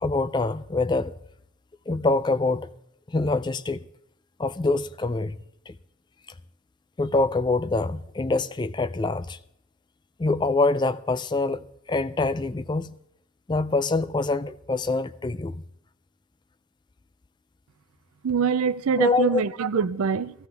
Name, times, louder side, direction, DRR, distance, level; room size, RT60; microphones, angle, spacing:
voice 1, 0.0-1.2 1.9-2.7 3.1-3.8 4.4-5.4 5.7-5.8 7.0-9.4 10.2-13.0 13.5-15.6 19.0-19.4, left 3 dB, 20° left, 0.4 m, -25 dB
voice 2, 18.2-20.3, right 6 dB, 75° right, 0.5 m, -24 dB
17.5 x 14.0 x 3.5 m
head